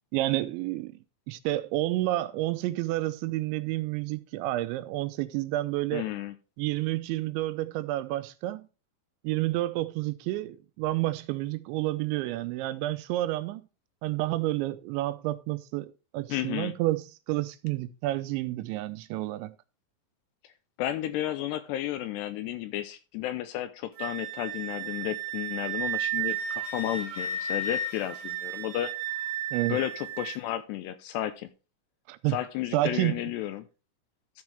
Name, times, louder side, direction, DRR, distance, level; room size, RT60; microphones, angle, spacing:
voice 1, 0.1-0.9 1.3-6.0 6.6-8.7 9.2-13.7 14.0-19.5 29.5-29.8 32.1-32.4 32.7-33.2, right 16 dB, 85° right, 2.9 m, -30 dB
voice 2, 5.9-6.3 16.3-16.7 20.8-28.9 29.7-31.5 32.3-33.6, left 13 dB, 80° left, 2.6 m, -32 dB
Wind instrument woodwind instrument, 24.0-30.4, right 5 dB, 55° right, 1.7 m, -33 dB
13.0 x 6.2 x 3.4 m
omnidirectional pair, 5.3 m